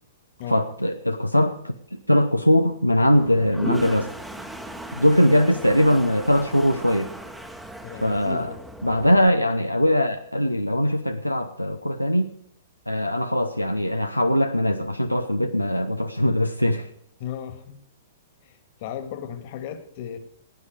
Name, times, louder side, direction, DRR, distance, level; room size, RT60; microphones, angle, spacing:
voice 1, 0.5-4.1 4.9-7.1 8.0-8.5 8.8-12.3 12.9-16.9, equal, 90° left, 7 dB, 0.8 m, -21 dB
Toilet flush, 3.1-9.3, right 1 dB, 5° right, 1.2 m, -36 dB
voice 2, 7.8-8.6 17.2-17.8 18.4-20.2, left 9 dB, 40° left, 9 dB, 1.9 m, -35 dB
17.5 x 9.8 x 4.8 m, 0.69 s
figure-of-eight pair, 110°, 0 cm